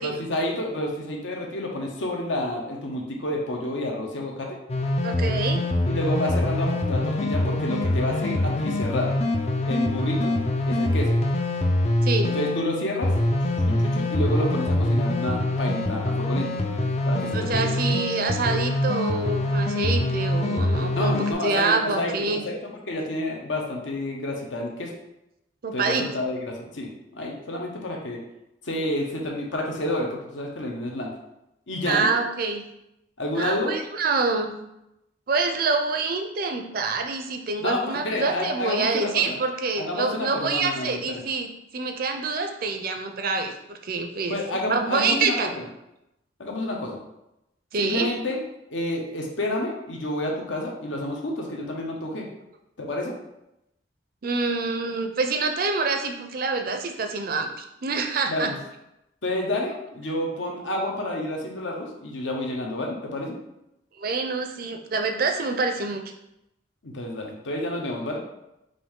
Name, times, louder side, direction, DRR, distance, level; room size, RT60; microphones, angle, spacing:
voice 1, 0.0-4.6 5.9-9.1 9.7-10.4 10.7-11.2 12.2-13.1 13.6-16.5 17.0-18.0 20.9-24.9 25.7-28.2 28.6-31.1 31.7-32.1 33.2-33.8 37.6-39.4 39.8-41.2 44.3-45.6 46.4-47.0 47.8-48.4 48.7-52.3 52.8-53.1 58.3-58.6 59.2-63.4 66.8-68.2, left 1 dB, 75° left, 0 dB, 1.0 m, -29 dB
sound 1, 4.7-21.3, left 1 dB, 35° left, 0.4 m, -24 dB
voice 2, 5.0-5.6 12.0-12.3 17.3-22.4 25.6-26.0 31.8-32.6 33.3-34.5 35.3-44.4 44.7-45.5 47.7-48.1 54.2-58.5 64.0-66.0, right 4 dB, 50° right, 5 dB, 0.5 m, -26 dB
5.2 x 2.6 x 3.7 m, 0.86 s
head